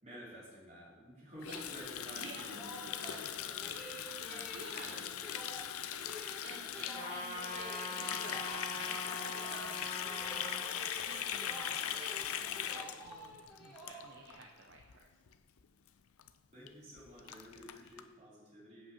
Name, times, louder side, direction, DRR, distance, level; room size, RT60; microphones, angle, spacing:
voice 1, 0.0-3.8 4.2-5.1 16.5-18.9, equal, 30° right, -6 dB, 3.2 m, -52 dB
Water tap faucet, 1.4-14.4 14.7-15.0 15.3-15.6 15.9-16.0 16.2-16.3 16.7-16.8 17.0-18.0, left 10 dB, 90° left, 0.5 m, -40 dB
voice 2, 2.1-2.6 3.0-5.4 5.9-9.9 10.5-12.3 12.6-15.2, right 2 dB, 55° right, 1 dB, 0.7 m, -52 dB
sound 1, 2.4-14.4, equal, ahead, 1.5 m, -50 dB
Trumpet, 6.9-10.6, left 1 dB, 30° left, 1.9 m, -43 dB
7.7 x 5.6 x 7.2 m, 1.3 s
head